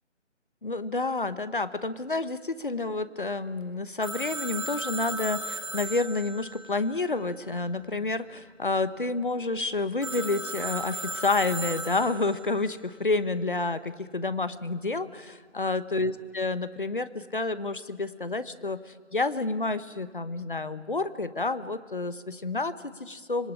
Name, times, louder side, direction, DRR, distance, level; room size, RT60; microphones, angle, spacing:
voice 1, 0.6-23.5, left 3 dB, 45° left, 13 dB, 1.1 m, -29 dB
Telephone, 4.0-7.7 10.0-12.6, right 2 dB, 25° right, 1.9 m, -36 dB
25.5 x 21.5 x 9.5 m, 1.5 s
figure-of-eight pair, 180°, 37 cm